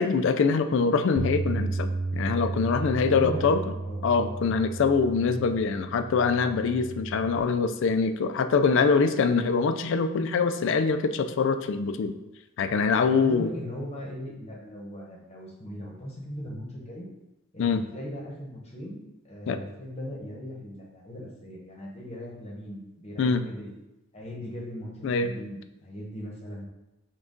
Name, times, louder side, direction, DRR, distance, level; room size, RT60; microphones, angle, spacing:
voice 1, 0.0-3.6 4.0-12.1 12.6-13.5 17.6-17.9 19.5-19.6 23.2-23.4 25.0-25.3, left 5 dB, 65° left, 9 dB, 0.3 m, -24 dB
Bass guitar, 1.2-7.4, right 3 dB, 20° right, 0.4 m, -33 dB
voice 2, 3.0-4.0 13.1-17.1 17.5-23.7 24.1-26.7, equal, 30° left, -2 dB, 0.9 m, -39 dB
6.0 x 2.3 x 3.7 m, 0.94 s
head